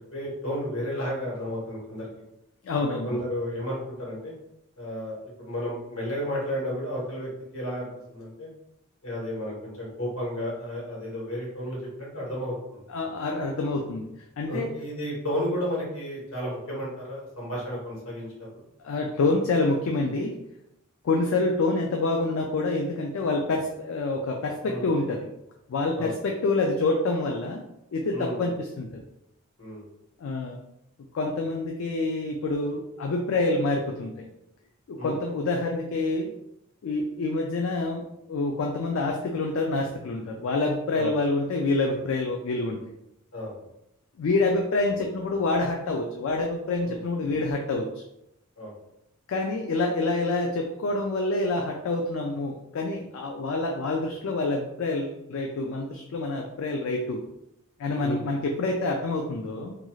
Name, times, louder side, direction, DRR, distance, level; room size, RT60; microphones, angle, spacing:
voice 1, 0.1-2.1 3.0-4.3 4.8-8.5 9.0-12.8 14.5-18.6 24.6-24.9 25.9-26.1 28.1-28.5 29.6-29.8 35.0-35.1 40.9-41.1 43.3-43.5 46.8-47.4 48.6-48.7 58.0-58.2, equal, 85° left, -4 dB, 1.2 m, -33 dB
voice 2, 2.6-3.3 12.9-14.1 14.4-14.7 18.8-20.4 21.0-25.3 25.7-27.6 27.9-29.0 30.2-30.6 31.1-34.3 34.9-36.3 36.8-42.8 44.2-48.0 49.3-57.2 57.8-59.8, left 2 dB, 65° left, 1 dB, 0.3 m, -27 dB
2.5 x 2.3 x 3.0 m, 0.83 s
head